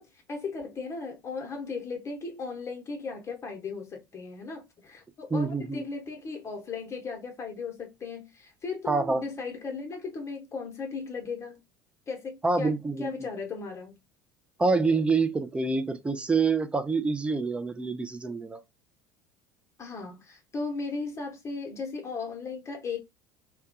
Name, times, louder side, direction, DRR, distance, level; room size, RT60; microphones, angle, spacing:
voice 1, 0.0-11.6 12.1-12.7 13.0-14.0 19.8-23.0, left 4 dB, 25° left, 0.9 m, -36 dB
voice 2, 5.3-5.8 8.9-9.2 12.4-13.1 14.6-18.6, right 4 dB, 10° right, 0.3 m, -26 dB
2.2 x 2.2 x 2.6 m
figure-of-eight pair, 65°, 10 cm